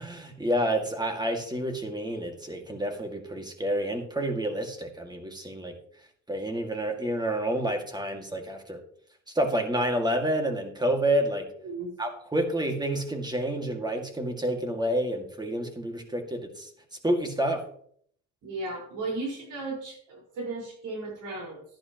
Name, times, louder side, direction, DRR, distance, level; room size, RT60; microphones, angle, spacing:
voice 1, 0.0-5.8 6.3-8.8 9.3-11.5 12.0-16.7 17.0-17.7, right 1 dB, 15° right, 4 dB, 2.2 m, -29 dB
voice 2, 18.4-21.6, right 2 dB, 85° right, -2 dB, 5.0 m, -35 dB
12.0 x 10.5 x 3.0 m, 0.63 s
cardioid pair, 90°, 30 cm